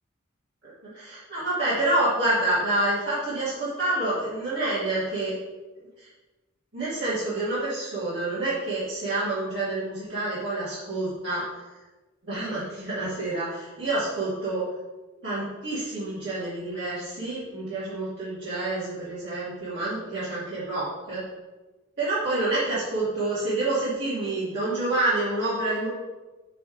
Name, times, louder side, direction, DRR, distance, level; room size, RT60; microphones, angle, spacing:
voice 1, 0.9-5.3 6.0-6.1 6.7-11.4 12.2-14.6 15.2-21.2 22.0-25.9, right 2 dB, 65° right, -12 dB, 2.7 m, -28 dB
7.3 x 6.8 x 3.4 m, 1.2 s
head